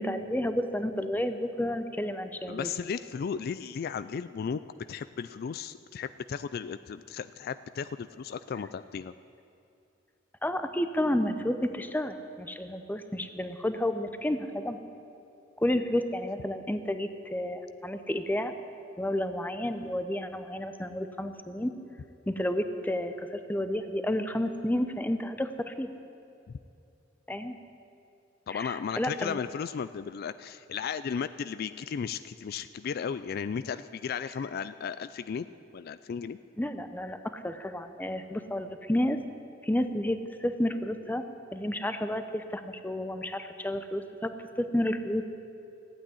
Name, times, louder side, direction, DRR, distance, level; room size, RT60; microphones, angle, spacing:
voice 1, 0.0-2.7 10.4-14.8 15.6-18.5 19.0-21.7 22.3-25.9 27.3-27.6 28.5-29.4 36.6-39.2 39.6-41.2 41.5-45.2, left 1 dB, 10° left, 9 dB, 0.7 m, -31 dB
voice 2, 2.5-4.6 4.9-9.1 28.5-35.5 35.7-36.4, left 6 dB, 55° left, 13 dB, 0.3 m, -35 dB
15.0 x 8.9 x 9.7 m, 2.7 s
head